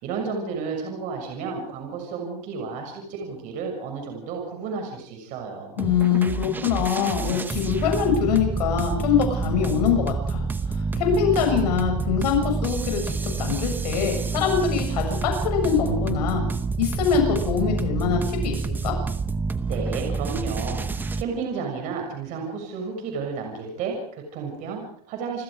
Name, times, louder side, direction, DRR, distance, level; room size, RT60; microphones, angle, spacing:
voice 1, 0.0-5.8 19.7-25.4, right 5 dB, 40° right, 2 dB, 6.8 m, -32 dB
voice 2, 5.8-10.4 10.9-16.4 16.8-18.6 18.8-18.9, left 7 dB, 80° left, 3 dB, 7.1 m, -23 dB
sound 1, 5.8-21.2, right 4 dB, 10° right, 0.9 m, -28 dB
29.5 x 21.0 x 5.0 m, 0.64 s
supercardioid pair, 160°, 20 cm